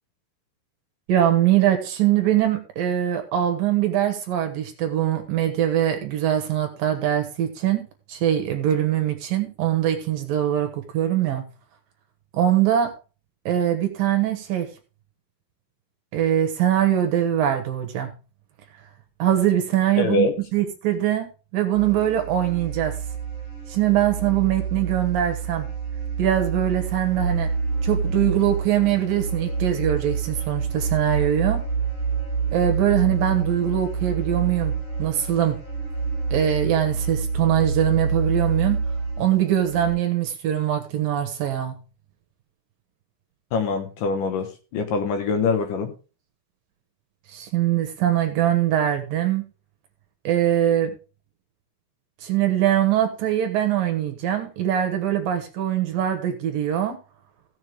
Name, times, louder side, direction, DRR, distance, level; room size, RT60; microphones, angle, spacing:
voice 1, 1.1-11.4 12.3-12.9 13.5-14.7 16.1-18.1 19.2-21.3 21.5-23.0 23.7-25.7 26.2-27.5 27.8-31.6 32.5-35.6 36.3-38.8 39.2-41.8 47.3-49.4 50.2-50.9 52.2-57.0, right 11 dB, 65° right, 6 dB, 2.6 m, -22 dB
voice 2, 20.0-20.3 43.5-45.9, left 4 dB, 65° left, 6 dB, 2.3 m, -24 dB
sound 1, 21.7-39.9, right 4 dB, 30° left, 8.8 m, -27 dB
16.0 x 7.3 x 3.4 m, 0.33 s
omnidirectional pair, 5.1 m